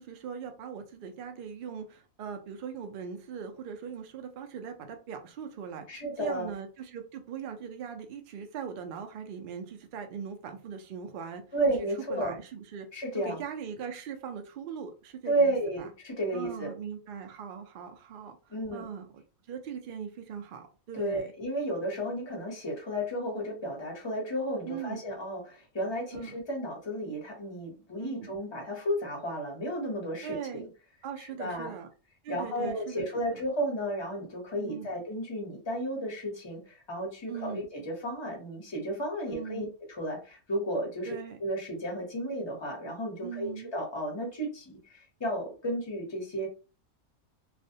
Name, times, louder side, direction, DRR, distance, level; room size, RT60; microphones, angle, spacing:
voice 1, 0.0-11.4 11.8-12.9 13.2-15.9 16.3-19.2 19.5-21.3 24.6-25.0 26.1-26.3 28.0-28.3 30.2-30.7 31.0-31.9 32.2-33.4 34.6-34.9 37.3-37.7 39.3-39.7 41.0-41.4 43.2-43.7, right 7 dB, 85° right, 0.4 m, -40 dB
voice 2, 5.9-6.5 11.5-12.4 12.9-13.4 15.2-16.7 18.5-18.9 20.9-30.7 31.2-31.7 32.3-41.1 41.4-46.5, right 1 dB, 25° left, 0.7 m, -33 dB
2.4 x 2.1 x 2.7 m
omnidirectional pair, 1.5 m